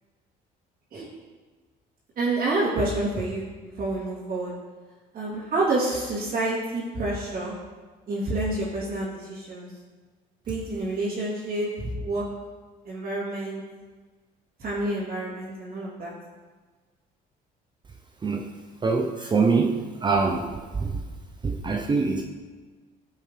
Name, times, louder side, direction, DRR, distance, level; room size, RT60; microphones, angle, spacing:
voice 1, 2.1-4.5 5.1-7.5 8.1-9.7 10.5-12.2 12.8-13.6 14.6-16.1, right 2 dB, 55° right, -9 dB, 3.3 m, -28 dB
voice 2, 18.8-19.7 20.0-20.5 20.8-20.9 21.4-22.2, right 4 dB, 25° right, 2 dB, 0.8 m, -23 dB
12.0 x 7.3 x 3.5 m, 1.4 s
cardioid pair, 110°, 17 cm